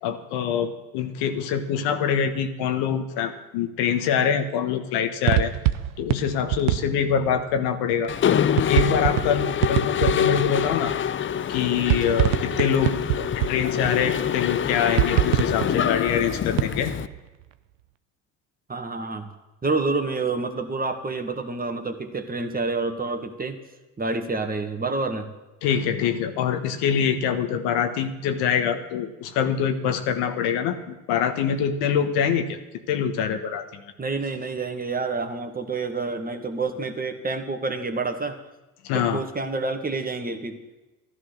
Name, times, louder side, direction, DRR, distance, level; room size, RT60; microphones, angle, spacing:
voice 1, 0.0-5.5 6.0-8.1 8.7-10.9 11.5-16.9 25.6-32.6 32.9-33.8 38.8-39.2, left 7 dB, 75° left, 7 dB, 1.4 m, -24 dB
sound 1, 5.2-7.4 8.0-10.7 11.5-14.1 14.9-17.2, right 15 dB, 85° right, 0.7 m, -25 dB
Mechanisms, 8.1-17.1, left 9 dB, 30° left, 0.6 m, -25 dB
voice 2, 18.7-19.3 19.6-23.6 24.0-25.3 34.0-38.4 38.9-40.6, right 3 dB, 20° right, 5 dB, 1.8 m, -28 dB
12.5 x 11.5 x 6.5 m, 1.1 s
hypercardioid pair, 70°, 39 cm